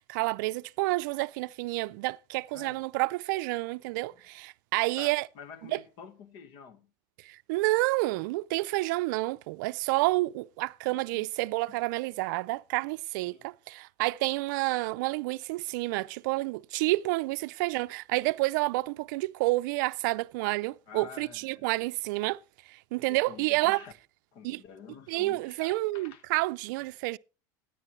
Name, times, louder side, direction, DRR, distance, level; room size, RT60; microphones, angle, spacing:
voice 1, 0.0-5.3 5.7-5.8 7.2-22.4 22.7-23.8 24.4-24.6 25.1-27.2, right 21 dB, 70° right, 0.4 m, -29 dB
voice 2, 4.9-6.9 10.9-11.3 11.7-11.8 13.3-13.5 20.9-21.7 23.1-23.9 24.3-26.2, left 6 dB, 60° left, 1.5 m, -49 dB
13.5 x 9.8 x 3.1 m
supercardioid pair, 130°, 11 cm